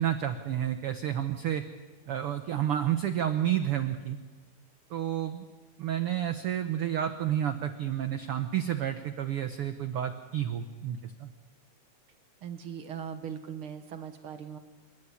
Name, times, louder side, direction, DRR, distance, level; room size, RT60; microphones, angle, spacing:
voice 1, 0.0-1.6 2.1-4.2 4.9-5.4 5.8-11.3, right 10 dB, 75° right, 8 dB, 1.3 m, -30 dB
voice 2, 12.4-14.6, right 8 dB, 55° right, 7 dB, 1.7 m, -39 dB
26.5 x 14.0 x 9.8 m, 1.3 s
omnidirectional pair, 3.8 m